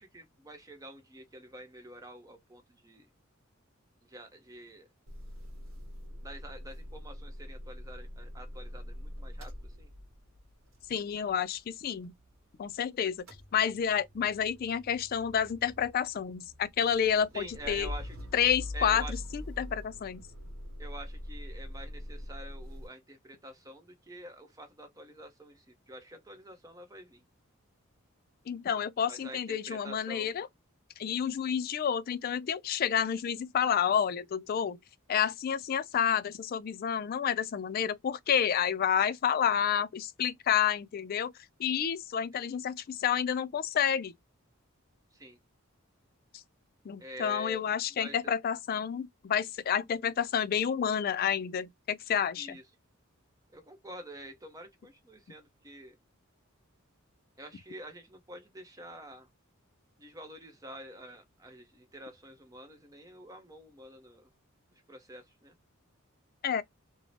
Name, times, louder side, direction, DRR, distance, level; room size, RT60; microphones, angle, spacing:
voice 1, 0.0-3.1 4.0-4.9 6.2-9.9 17.3-18.2 18.7-19.2 20.8-27.2 29.0-30.3 42.3-42.5 45.1-45.4 47.0-47.6 47.9-48.2 52.4-52.6 53.5-56.0 57.4-59.3 60.0-64.3 64.7-65.5, right 1 dB, 15° right, 0.7 m, -47 dB
Motor vehicle (road) / Engine starting / Idling, 5.1-12.8 13.0-22.9, left 1 dB, 70° right, 1.0 m, -44 dB
voice 2, 10.9-12.1 12.6-13.3 13.5-17.9 18.3-20.2 28.5-30.5 31.0-34.8 35.1-41.3 41.6-44.1 46.9-52.6 66.4-66.6, left 8 dB, 45° left, 0.3 m, -29 dB
2.6 x 2.0 x 3.1 m
head